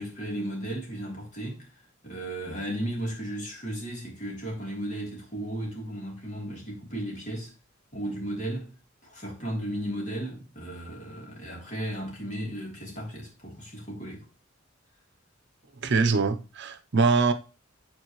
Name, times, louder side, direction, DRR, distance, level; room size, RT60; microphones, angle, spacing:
voice 1, 0.0-7.5 7.9-8.7 9.0-14.2, right 1 dB, 40° left, 3.2 m, -35 dB
voice 2, 15.8-17.3, right 4 dB, 60° right, 0.7 m, -23 dB
9.0 x 4.5 x 3.0 m
head